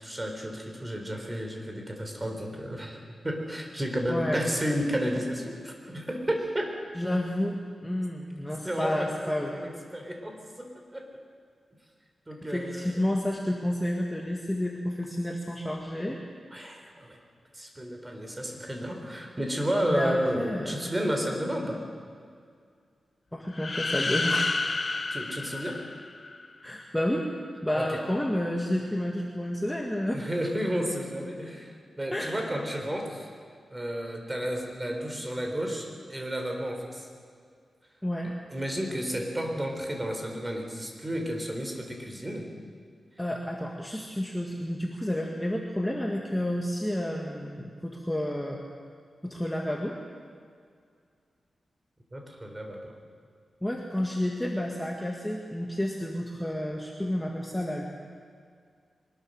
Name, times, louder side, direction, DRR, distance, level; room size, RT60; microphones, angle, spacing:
voice 1, 0.0-6.7 8.6-11.1 12.3-13.1 16.5-17.2 17.5-21.8 25.1-25.8 27.8-28.0 30.1-33.3 33.7-37.1 38.5-42.5 52.1-53.0, equal, 15° right, 2 dB, 4.0 m, -32 dB
voice 2, 4.1-4.5 7.0-9.6 12.5-16.2 19.9-20.9 23.3-24.5 26.6-27.3 27.6-30.3 32.1-32.4 38.0-38.3 43.2-48.6 49.2-50.0 53.6-57.8, left 1 dB, 5° left, 0 dB, 1.9 m, -30 dB
sound 1, 23.5-26.5, left 3 dB, 35° left, 1.1 m, -30 dB
23.0 x 20.0 x 6.6 m, 2.1 s
wide cardioid pair, 110°, 0 cm